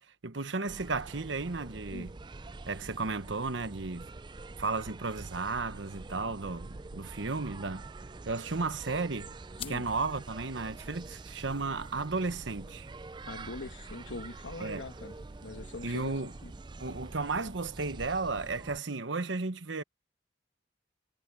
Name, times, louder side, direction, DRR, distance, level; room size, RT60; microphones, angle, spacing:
voice 1, 0.0-2.2 2.7-4.1 4.6-7.8 8.2-9.3 9.7-12.9 14.6-14.8 15.8-16.3 16.8-19.8, right 3 dB, 80° right, 1.1 m, -34 dB
sound 1, 0.7-18.8, right 3 dB, 25° right, 0.4 m, -46 dB
sound 2, 9.5-18.5, left 8 dB, 30° left, 1.2 m, -55 dB
voice 2, 13.3-15.1 15.4-16.1 16.4-16.5, left 2 dB, 85° left, 1.6 m, -42 dB
head